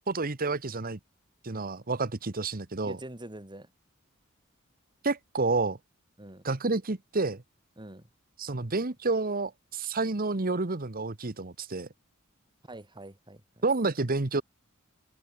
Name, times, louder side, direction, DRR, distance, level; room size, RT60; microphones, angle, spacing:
voice 1, 0.1-1.0 1.4-3.0 5.0-5.8 6.4-7.4 8.4-11.9 13.6-14.4, right 3 dB, 45° right, 1.2 m, -29 dB
voice 2, 2.8-3.7 6.2-6.4 7.8-8.1 12.7-13.6, right 1 dB, 20° right, 3.1 m, -45 dB
head